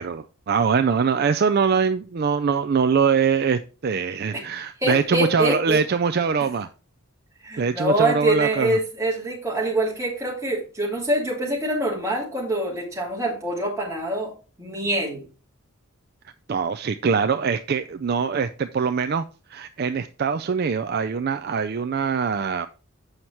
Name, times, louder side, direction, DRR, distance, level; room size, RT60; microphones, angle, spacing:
voice 1, 0.0-6.7 7.6-8.8 16.5-19.2 19.5-22.7, right 5 dB, 45° right, 10 dB, 0.3 m, -23 dB
voice 2, 4.8-5.8 7.4-14.3 14.6-15.2, right 1 dB, 15° right, -4 dB, 2.9 m, -25 dB
7.9 x 5.7 x 4.4 m, 0.34 s
head